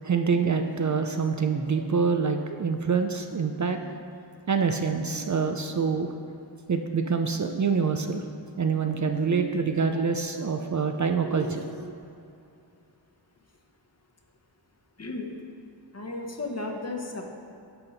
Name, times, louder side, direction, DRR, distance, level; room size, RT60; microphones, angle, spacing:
voice 1, 0.0-4.0 4.5-6.1 6.7-8.2 8.6-11.9, right 5 dB, 45° right, 6 dB, 0.4 m, -26 dB
voice 2, 15.9-17.3, left 2 dB, 35° left, 2 dB, 0.9 m, -34 dB
10.0 x 5.6 x 3.9 m, 2.7 s
wide cardioid pair, 85°, 43 cm